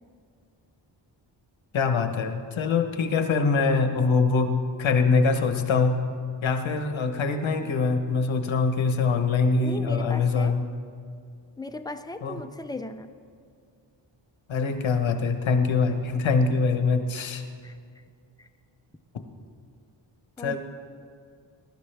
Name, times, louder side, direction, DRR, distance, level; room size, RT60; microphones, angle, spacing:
voice 1, 1.7-6.1 6.4-10.7 12.2-12.4 14.5-17.4 20.4-20.6, left 4 dB, 75° left, 7 dB, 1.2 m, -23 dB
voice 2, 9.6-10.6 11.6-13.1 17.6-17.8 18.4-18.5 20.4-20.6, left 2 dB, 10° left, 8 dB, 0.6 m, -37 dB
21.5 x 12.0 x 3.4 m, 2.2 s
wide cardioid pair, 90°, 46 cm